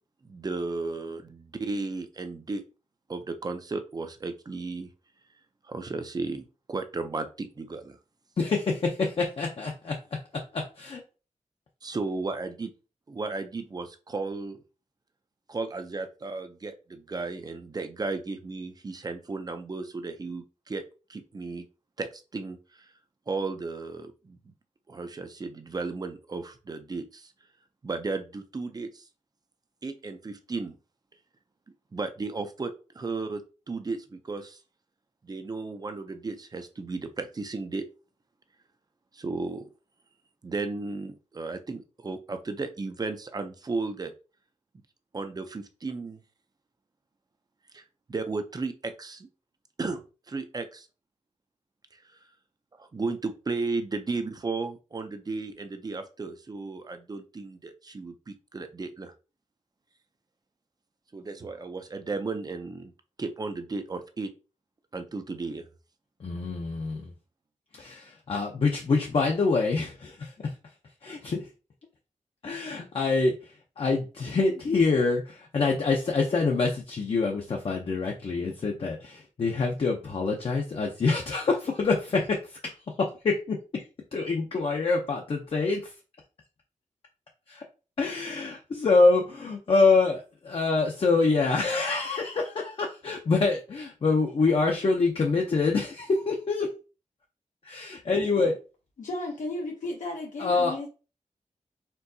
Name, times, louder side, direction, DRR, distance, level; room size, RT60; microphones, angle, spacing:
voice 1, 0.2-2.6 3.1-4.9 5.7-8.0 11.8-12.7 13.1-14.6 15.5-20.8 21.1-21.6 22.0-22.9 23.3-24.5 24.9-27.3 27.8-29.0 29.8-30.8 31.9-33.4 33.7-34.6 35.2-37.8 39.1-39.7 40.4-44.1 45.1-46.2 47.7-47.8 48.1-49.3 49.8-50.0 50.3-50.9 52.8-59.1 61.1-62.9 63.2-64.3 64.9-65.6, right 3 dB, 30° right, 0.5 m, -34 dB
voice 2, 8.4-9.9 10.5-11.0 66.2-67.1 67.7-70.3 71.0-71.4 72.4-73.3 73.8-82.4 82.6-82.7 83.0-83.8 84.1-85.8 87.5-87.6 88.0-96.7 97.6-98.6 100.4-100.8, left 3 dB, 45° left, 0.6 m, -26 dB
voice 3, 99.0-100.9, left 2 dB, 75° left, 0.8 m, -34 dB
4.5 x 3.8 x 2.7 m
wide cardioid pair, 170°, 13 cm